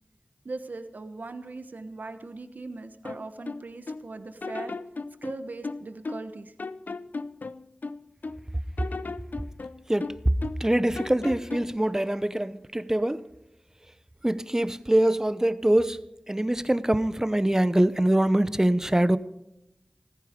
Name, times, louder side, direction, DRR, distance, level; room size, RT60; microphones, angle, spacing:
voice 1, 0.4-4.7 5.2-6.5, right 3 dB, 70° right, 9 dB, 1.1 m, -39 dB
sound 1, 3.0-4.1 4.4-6.3 6.6-8.4 8.8-10.7 11.0-11.8, left 3 dB, 70° left, 0.5 m, -36 dB
voice 2, 10.6-13.2 14.2-19.2, right 1 dB, 15° right, 15 dB, 0.8 m, -24 dB
14.5 x 14.5 x 5.2 m, 0.84 s
cardioid pair, 45°, 3 cm